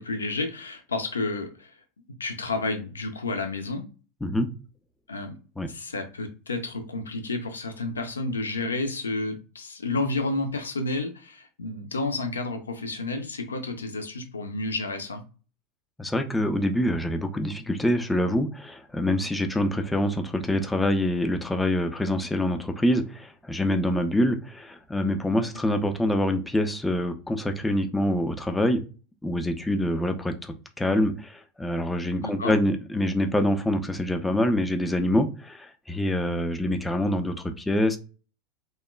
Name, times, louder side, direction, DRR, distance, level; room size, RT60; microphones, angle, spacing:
voice 1, 0.0-1.7 2.2-3.9 5.1-5.4 5.7-15.2 32.2-32.6, left 2 dB, 80° left, 6 dB, 0.4 m, -31 dB
voice 2, 16.0-28.8 29.2-38.0, left 1 dB, 10° left, 7 dB, 0.4 m, -25 dB
2.9 x 2.1 x 2.2 m, 0.35 s
figure-of-eight pair, 80°, 0 cm